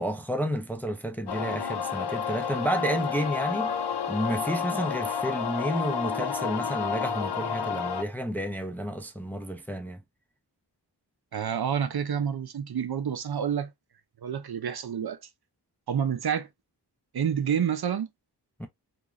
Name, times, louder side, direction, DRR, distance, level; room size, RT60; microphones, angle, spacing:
voice 1, 0.0-3.8 4.1-10.0 18.6-18.7, equal, 5° left, 0.4 m, -31 dB
sound 1, 1.3-8.0, left 6 dB, 70° left, 0.5 m, -30 dB
voice 2, 11.3-13.7 14.2-15.2 15.9-16.5 17.1-18.1, right 8 dB, 60° right, 0.5 m, -28 dB
2.9 x 2.3 x 2.4 m
wide cardioid pair, 75°, 42 cm